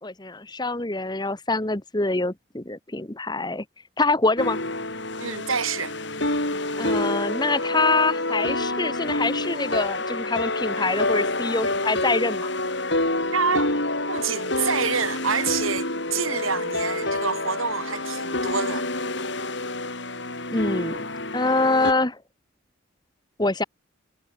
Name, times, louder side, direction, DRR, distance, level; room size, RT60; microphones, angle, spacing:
voice 1, 0.0-3.6 4.0-4.6 6.8-12.5 20.5-21.1 21.3-22.2 23.4-23.6, left 3 dB, 20° left, 1.2 m, -25 dB
sound 1, 4.4-21.9, left 2 dB, 55° left, 7.9 m, -27 dB
voice 2, 5.2-5.9 13.3-13.7 14.1-18.9, right 5 dB, 80° right, 3.9 m, -27 dB
head